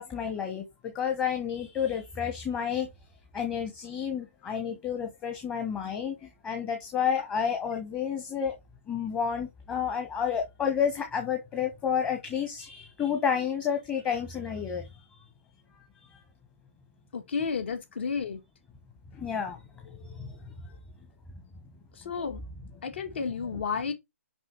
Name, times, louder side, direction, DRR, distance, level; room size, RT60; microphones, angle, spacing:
voice 1, 0.0-2.9 3.3-8.6 8.9-14.9 19.1-19.6 19.8-20.3 23.4-23.6, left 7 dB, 15° left, 1.3 m, -30 dB
voice 2, 17.1-18.4 22.0-22.4 22.8-23.9, left 5 dB, 50° left, 2.2 m, -31 dB
6.1 x 5.5 x 4.6 m
figure-of-eight pair, 135°, 8 cm